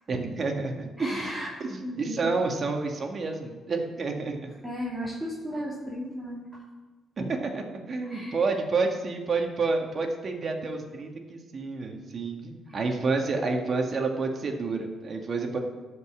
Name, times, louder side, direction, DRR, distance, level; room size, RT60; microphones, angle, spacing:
voice 1, 0.1-1.3 1.7-4.5 7.2-15.6, right 3 dB, 45° right, 3 dB, 1.7 m, -29 dB
voice 2, 1.0-1.5 1.8-2.2 4.6-6.4 8.0-8.4 12.7-12.8, equal, 15° right, -7 dB, 2.7 m, -34 dB
12.0 x 5.4 x 7.4 m, 1.3 s
cardioid pair, 90°, 0 cm